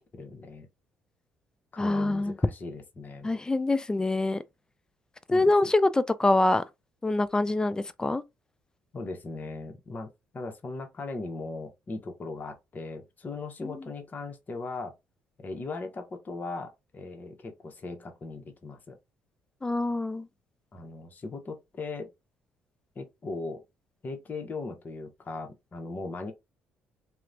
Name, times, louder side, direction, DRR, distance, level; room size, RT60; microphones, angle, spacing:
voice 1, 0.1-0.7 1.7-3.3 5.3-5.7 8.9-14.9 15.4-19.0 20.7-22.1 23.0-23.6 24.0-26.3, left 3 dB, 35° left, 0.7 m, -38 dB
voice 2, 1.8-2.4 3.2-4.4 5.3-6.6 7.0-8.2 13.6-13.7 19.6-20.3, left 2 dB, 15° left, 0.3 m, -25 dB
2.9 x 2.1 x 2.4 m
supercardioid pair, 75°, 5 cm